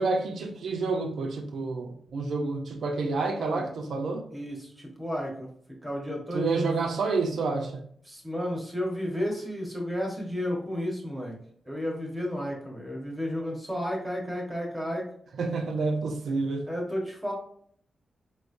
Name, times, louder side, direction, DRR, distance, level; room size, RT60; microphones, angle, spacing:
voice 1, 0.0-4.2 6.3-7.7 15.4-16.6, right 3 dB, 70° right, 4 dB, 0.6 m, -29 dB
voice 2, 3.3-3.7 4.3-5.5 5.8-6.7 8.0-11.3 11.6-15.1 16.7-17.3, equal, 10° right, -1 dB, 1.2 m, -32 dB
5.0 x 3.1 x 2.6 m, 0.62 s
wide cardioid pair, 165°, 0 cm